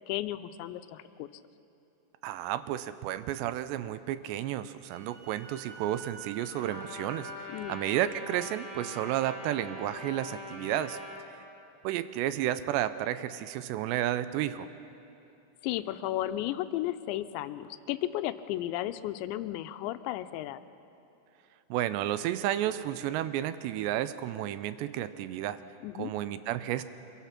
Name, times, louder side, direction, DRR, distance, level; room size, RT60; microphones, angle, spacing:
voice 1, 0.1-1.3 7.5-7.8 15.6-20.6 25.8-26.1, left 14 dB, 85° left, 11 dB, 2.9 m, -34 dB
voice 2, 2.2-7.3 7.7-11.0 11.8-14.7 21.7-25.6 26.0-26.8, right 12 dB, 80° right, 13 dB, 2.7 m, -32 dB
Wind instrument woodwind instrument, 4.6-7.6, right 4 dB, 65° right, 4.0 m, -47 dB
Trumpet, 6.6-11.2, left 2 dB, 40° left, 1.0 m, -44 dB
26.0 x 22.0 x 5.9 m, 2.8 s
omnidirectional pair, 5.1 m